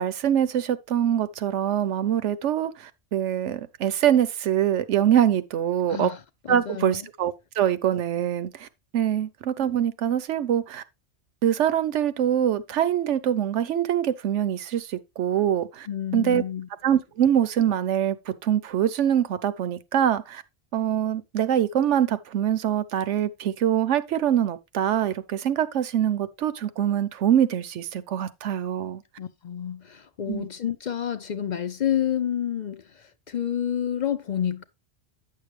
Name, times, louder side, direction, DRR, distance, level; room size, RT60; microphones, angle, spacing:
voice 1, 0.0-6.1 6.5-8.7 8.9-10.8 11.4-15.9 16.1-16.4 16.8-20.4 20.7-29.0 30.3-30.5, right 10 dB, 75° right, 1.0 m, -24 dB
voice 2, 5.9-7.1 15.9-16.7 29.2-34.6, left 9 dB, 55° left, 0.5 m, -29 dB
9.7 x 6.7 x 3.2 m
omnidirectional pair, 1.3 m